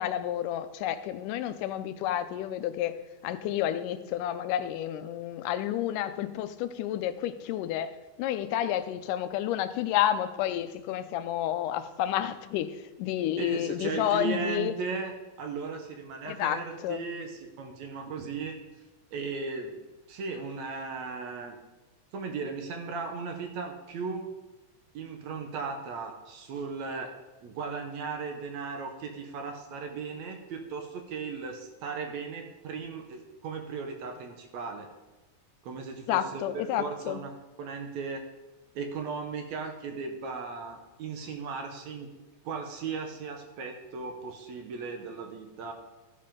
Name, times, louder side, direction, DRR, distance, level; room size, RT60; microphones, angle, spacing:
voice 1, 0.0-2.9 3.2-7.9 8.2-14.7 16.3-17.0 36.1-37.2, left 11 dB, 85° left, 11 dB, 2.2 m, -30 dB
voice 2, 13.4-18.5 19.1-19.8 20.1-21.6 22.1-24.3 24.9-27.1 27.4-34.9 35.6-37.3 37.6-38.2 38.8-42.1 42.5-45.7, right 5 dB, 70° right, 4 dB, 2.1 m, -36 dB
13.5 x 5.5 x 5.2 m, 1.1 s
omnidirectional pair, 3.7 m